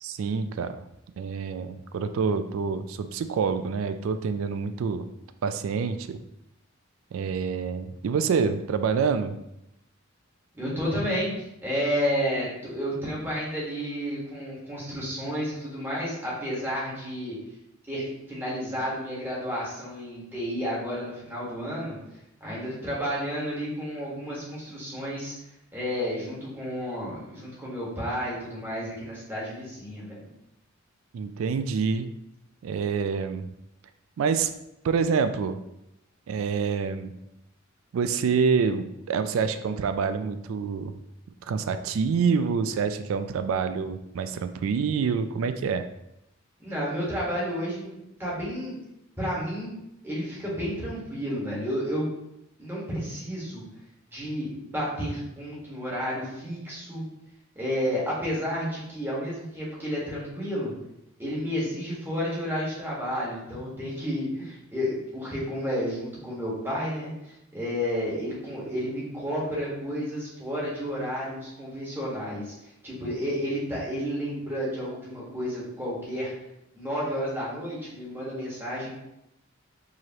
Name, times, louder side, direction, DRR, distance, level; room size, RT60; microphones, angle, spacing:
voice 1, 0.0-0.8 1.2-5.1 5.4-6.2 7.1-9.4 31.1-32.1 32.6-33.5 34.2-34.5 34.8-35.6 36.3-37.1 37.9-40.9 41.5-45.9, right 5 dB, 80° right, 10 dB, 0.3 m, -27 dB
voice 2, 10.5-17.4 17.9-22.0 22.4-25.3 25.7-30.3 46.6-48.8 49.2-49.7 50.0-52.1 52.6-53.6 54.1-57.0 57.5-60.7 61.2-72.5 72.8-76.3 76.7-78.9, equal, 10° right, -7 dB, 1.5 m, -31 dB
4.8 x 3.0 x 2.9 m, 0.84 s
head